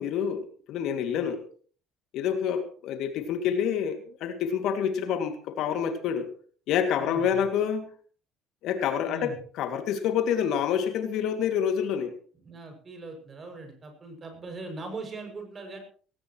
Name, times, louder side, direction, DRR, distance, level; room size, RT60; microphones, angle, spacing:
voice 1, 0.0-1.4 2.1-6.3 6.7-7.8 8.6-12.1, left 8 dB, 70° left, 7 dB, 2.5 m, -27 dB
voice 2, 7.0-7.4 9.1-9.4 12.4-15.8, right 3 dB, 30° right, 5 dB, 6.9 m, -40 dB
19.0 x 18.0 x 3.2 m, 0.43 s
cardioid pair, 115°, 0 cm